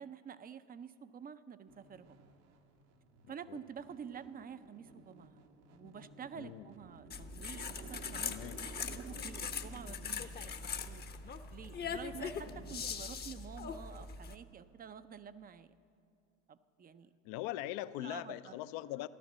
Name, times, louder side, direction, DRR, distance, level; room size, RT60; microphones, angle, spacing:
voice 1, 0.0-2.2 3.3-5.4 5.7-15.7 16.5-17.1 18.0-18.5, right 7 dB, 25° right, 13 dB, 0.5 m, -49 dB
sound 1, 1.7-12.8, right 5 dB, 80° right, 1.6 m, -55 dB
voice 2, 3.2-3.6 6.3-6.7 8.2-8.7 9.1-9.3 17.2-19.1, left 15 dB, 60° left, 15 dB, 0.6 m, -42 dB
sound 2, 7.1-14.4, left 5 dB, 25° left, 0.8 m, -41 dB
15.0 x 12.0 x 7.3 m, 2.5 s
hypercardioid pair, 85°, 40 cm